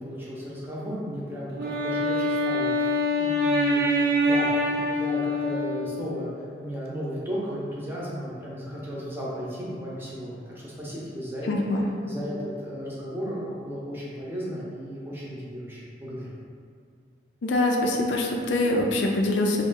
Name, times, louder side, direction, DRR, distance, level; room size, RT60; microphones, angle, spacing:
voice 1, 0.0-3.8 4.2-6.3 6.6-11.6 12.0-16.3, equal, 10° right, -7 dB, 0.6 m, -35 dB
Wind instrument woodwind instrument, 1.5-6.3, left 1 dB, 55° right, 0.4 m, -25 dB
voice 2, 11.5-11.9 17.4-19.6, left 2 dB, 80° left, 1 dB, 0.4 m, -24 dB
3.0 x 2.5 x 3.8 m, 2.2 s
head